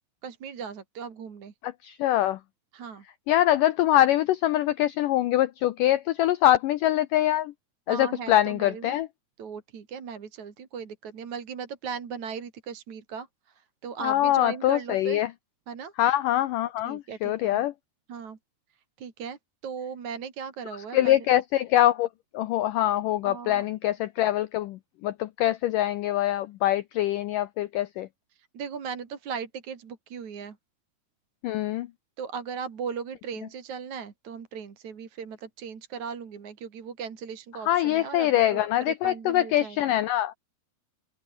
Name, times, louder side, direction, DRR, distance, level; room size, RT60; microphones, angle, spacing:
voice 1, 0.2-1.5 2.7-3.0 7.9-9.0 9.4-15.2 15.7-15.9 16.8-17.6 18.1-18.4 19.0-21.2 23.2-23.6 28.3-30.6 32.2-39.9, right 6 dB, 45° right, 3.8 m, -38 dB
voice 2, 1.6-2.4 3.3-7.5 7.9-9.1 14.0-15.3 16.0-17.7 20.9-22.1 22.3-28.1 31.4-31.9 37.7-40.3, left 13 dB, 85° left, 1.8 m, -24 dB
open air
omnidirectional pair, 4.8 m